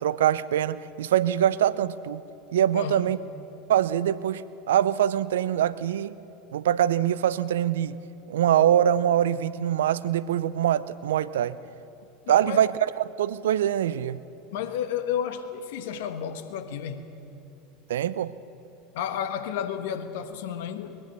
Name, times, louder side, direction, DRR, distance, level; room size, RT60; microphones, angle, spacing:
voice 1, 0.0-2.2 2.5-3.2 3.7-4.4 4.7-6.1 6.5-8.0 8.3-11.6 12.3-12.7 13.0-14.2 17.9-18.3, right 10 dB, 70° right, 0.5 m, -23 dB
voice 2, 2.7-3.1 12.2-12.6 14.5-17.1 18.9-21.0, left 9 dB, 65° left, 1.3 m, -32 dB
21.5 x 21.0 x 6.7 m
figure-of-eight pair, 80°, 0 cm